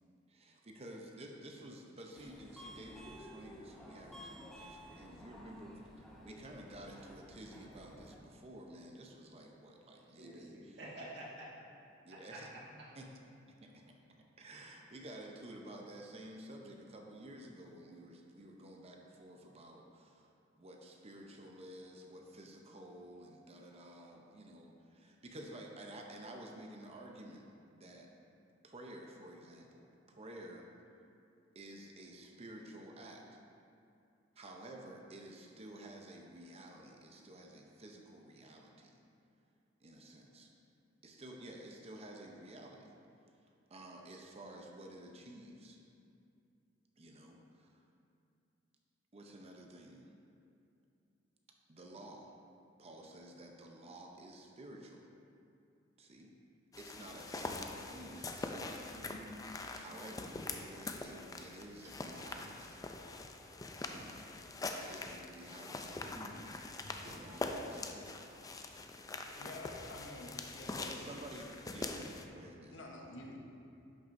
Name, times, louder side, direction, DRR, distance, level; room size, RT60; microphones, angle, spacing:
voice 1, 0.3-10.9 12.0-12.5 12.9-13.1 13.5-13.9 14.4-20.3 20.5-28.1 28.6-30.7 31.5-33.3 34.4-39.0 39.8-40.5 41.0-42.9 43.7-45.8 47.0-47.8 49.1-50.1 51.7-52.3 52.8-55.1 56.0-56.3 56.8-58.9 59.7-62.8 64.7-66.5 67.0-68.2 70.9-71.9 72.3-72.8, right 1 dB, 35° right, 1 dB, 0.6 m, -52 dB
Subway metro underground, 2.1-8.2, equal, ahead, 0.8 m, -53 dB
voice 2, 10.2-11.5 12.1-12.2 58.9-59.4 65.9-66.0 67.0-67.1 72.5-72.6, right 1 dB, 60° right, -5 dB, 1.6 m, -49 dB
sound 1, 56.7-72.3, left 3 dB, 20° left, 0.4 m, -44 dB
voice 3, 69.4-71.0 72.7-73.4, left 2 dB, 70° left, 0 dB, 1.0 m, -49 dB
11.0 x 5.9 x 2.6 m, 2.5 s
head